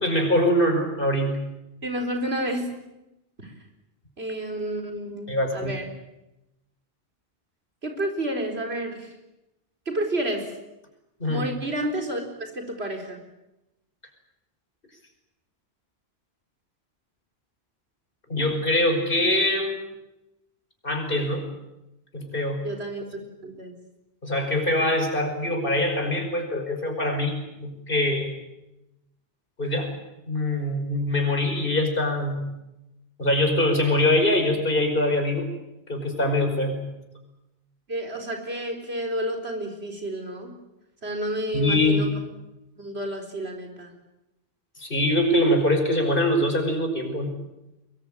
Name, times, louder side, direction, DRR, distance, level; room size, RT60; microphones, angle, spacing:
voice 1, 0.0-1.4 5.3-5.7 11.2-11.5 18.3-19.7 20.8-21.5 22.1-22.7 24.2-28.3 29.6-29.9 30.3-32.5 33.2-35.5 35.9-36.8 41.5-42.1 44.8-47.3, left 1 dB, 60° left, 4 dB, 5.5 m, -23 dB
voice 2, 1.8-2.7 3.4-3.5 4.2-5.9 7.8-9.1 9.9-10.5 11.3-13.2 22.6-23.0 23.4-23.7 37.9-40.5 41.0-42.1 42.8-43.9, right 1 dB, 85° right, 3 dB, 4.6 m, -30 dB
23.5 x 22.0 x 8.9 m, 0.95 s
omnidirectional pair, 1.0 m